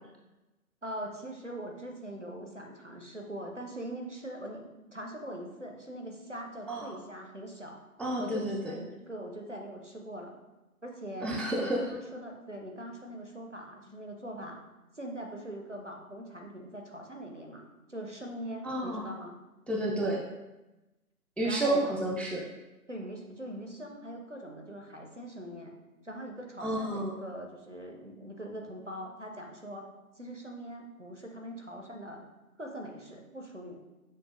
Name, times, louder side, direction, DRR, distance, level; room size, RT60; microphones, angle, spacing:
voice 1, 0.8-7.8 8.2-10.3 10.8-11.3 11.6-14.6 14.9-17.6 17.9-19.4 21.4-21.9 22.9-25.7 26.0-29.8 30.2-32.3 32.6-33.8, right 1 dB, 55° right, 1 dB, 0.5 m, -42 dB
voice 2, 8.0-8.7 11.2-11.8 18.6-19.1 19.7-20.2 21.4-22.4 26.6-27.2, right 1 dB, 5° left, -1 dB, 0.3 m, -30 dB
6.1 x 2.1 x 2.4 m, 1.0 s
figure-of-eight pair, 180°, 45 cm